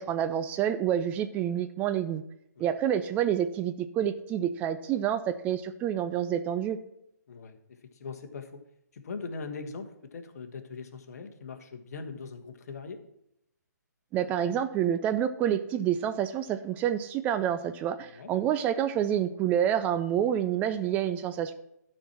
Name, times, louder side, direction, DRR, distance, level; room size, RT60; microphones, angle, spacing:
voice 1, 0.0-2.2 2.6-6.8 14.1-21.5, right 10 dB, 15° right, 10 dB, 0.3 m, -28 dB
voice 2, 7.3-8.6 8.9-13.0 18.1-18.3, left 4 dB, 55° left, 7 dB, 1.3 m, -41 dB
12.5 x 4.4 x 5.9 m, 0.78 s
figure-of-eight pair, 140°, 10 cm